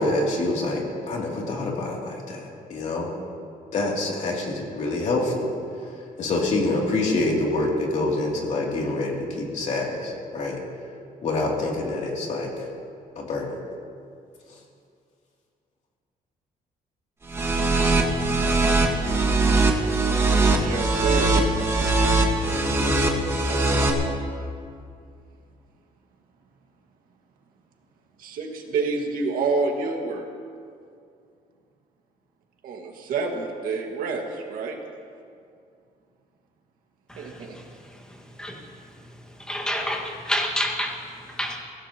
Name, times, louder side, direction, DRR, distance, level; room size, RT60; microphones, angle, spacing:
voice 1, 0.0-3.1 3.7-5.5 5.8-5.9 6.2-10.6 11.2-12.5 13.2-13.5, left 2 dB, 55° left, -2 dB, 2.9 m, -26 dB
sound 1, 17.3-23.9, right 3 dB, 20° right, 1.6 m, -21 dB
voice 2, 20.6-21.5 28.2-30.3 32.6-34.8 37.2-37.6, right 4 dB, 75° right, 1 dB, 1.9 m, -28 dB
voice 3, 39.5-40.9 41.4-41.6, equal, 5° left, -1 dB, 1.8 m, -27 dB
23.0 x 16.5 x 3.0 m, 2.3 s
cardioid pair, 160°, 15 cm